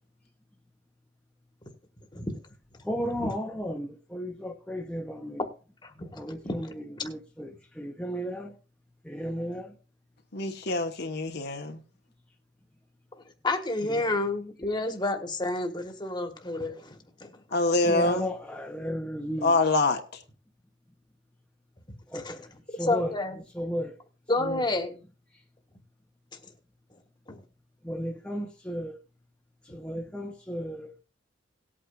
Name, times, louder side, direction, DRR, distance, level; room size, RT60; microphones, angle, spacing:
voice 1, 2.8-5.4 6.1-6.7 7.0-8.5 9.0-9.7 13.9-14.1 17.8-19.6 22.1-22.5 22.8-23.1 23.5-24.0 24.4-24.6 27.8-29.0 29.7-31.0, equal, 5° left, 0.9 m, -34 dB
voice 2, 5.8-6.6 13.4-17.3 22.1-22.4 22.8-23.4 24.3-25.0 27.3-27.4, left 2 dB, 25° left, 1.5 m, -30 dB
voice 3, 10.3-11.8 17.5-18.3 19.4-20.0, left 2 dB, 55° left, 1.2 m, -25 dB
18.5 x 8.6 x 2.5 m
head